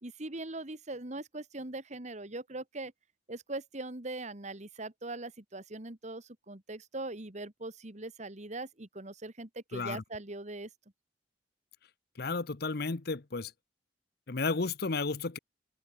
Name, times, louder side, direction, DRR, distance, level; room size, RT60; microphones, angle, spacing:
voice 1, 0.0-2.9 3.3-10.7, right 2 dB, 40° right, 2.0 m, -41 dB
voice 2, 9.7-10.0 12.2-13.5 14.3-15.4, left 3 dB, 60° left, 0.9 m, -33 dB
head